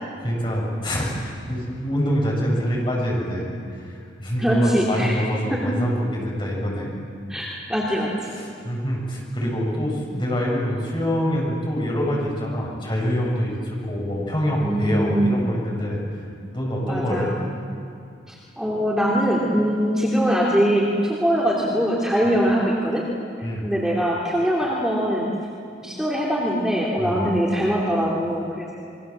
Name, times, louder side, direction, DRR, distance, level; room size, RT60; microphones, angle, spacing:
voice 1, 0.2-6.9 8.3-16.0 16.5-17.3 23.4-23.7 27.0-27.3, equal, 25° left, -3 dB, 7.6 m, -25 dB
voice 2, 4.4-5.1 5.5-5.6 7.3-8.3 14.6-15.4 16.8-17.3 18.3-23.0 23.6-25.3 25.8-28.7, equal, 5° right, -5 dB, 2.8 m, -22 dB
26.5 x 23.0 x 7.5 m, 2.4 s
head